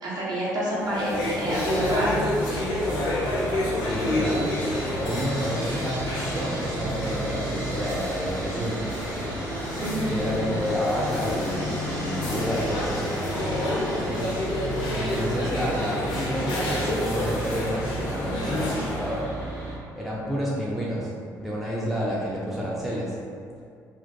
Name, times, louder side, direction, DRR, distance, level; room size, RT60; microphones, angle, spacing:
voice 1, 0.0-2.2 9.8-10.2, right 1 dB, 45° right, -7 dB, 0.8 m, -28 dB
sound 1, 0.7-19.2, left 1 dB, 55° left, 0.5 m, -30 dB
Sawing, 1.5-19.8, right 1 dB, 75° right, 1.0 m, -33 dB
voice 2, 3.8-4.5 5.0-8.9 10.1-13.2 13.9-14.3 15.0-19.3 20.0-21.1 21.4-23.2, equal, ahead, -6 dB, 0.4 m, -30 dB
2.4 x 2.2 x 2.3 m, 2.3 s
figure-of-eight pair, 45°, 10 cm